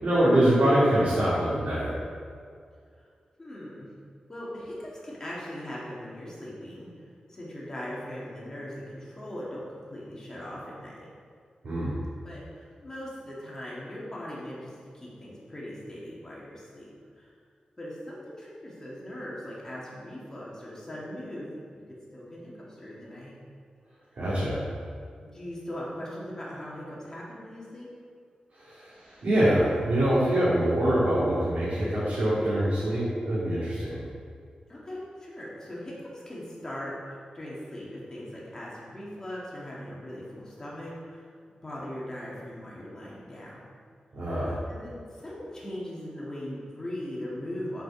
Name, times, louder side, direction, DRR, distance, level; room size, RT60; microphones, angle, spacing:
voice 1, 0.0-1.9 11.6-12.0 24.2-24.6 28.6-34.0 44.1-44.6, right 1 dB, 70° right, -10 dB, 2.3 m, -24 dB
voice 2, 3.4-3.9 4.3-6.9 7.3-11.1 12.2-17.3 17.8-21.5 21.7-21.8 22.1-23.4 25.2-27.9 34.7-41.3 41.6-43.6 44.7-47.8, left 1 dB, 25° left, -7 dB, 2.0 m, -40 dB
7.8 x 5.1 x 6.3 m, 2.2 s
wide cardioid pair, 125°, 3 cm